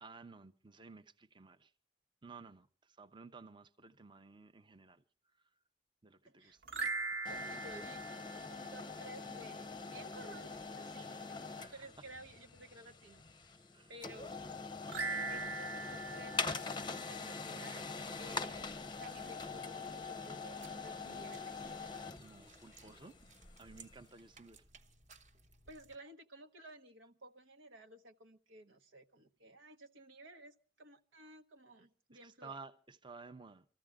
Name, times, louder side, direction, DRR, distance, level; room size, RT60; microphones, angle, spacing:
voice 1, 0.0-1.7 2.2-5.0 6.0-6.6 11.6-11.9 13.7-13.9 22.2-23.2 23.6-24.6 32.2-33.6, right 4 dB, 25° right, 0.7 m, -54 dB
voice 2, 6.2-6.6 7.3-8.0 8.5-14.4 15.1-18.6 19.0-22.0 22.7-22.9 25.7-32.5, right 1 dB, 85° right, 1.2 m, -55 dB
sound 1, 6.6-9.1 14.8-17.5, right 3 dB, 70° right, 1.3 m, -41 dB
sound 2, 7.2-24.1, left 4 dB, 25° left, 0.7 m, -44 dB
sound 3, 18.0-26.0, right 3 dB, 40° right, 1.1 m, -62 dB
25.5 x 14.0 x 3.6 m
head